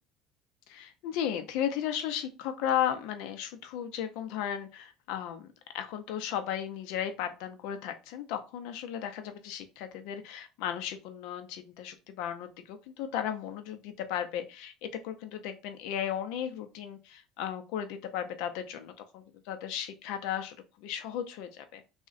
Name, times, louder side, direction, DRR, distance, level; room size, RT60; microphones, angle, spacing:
voice 1, 0.7-21.8, left 9 dB, 75° left, 8 dB, 0.4 m, -35 dB
3.6 x 2.1 x 2.4 m, 0.29 s
supercardioid pair, 90°, 0 cm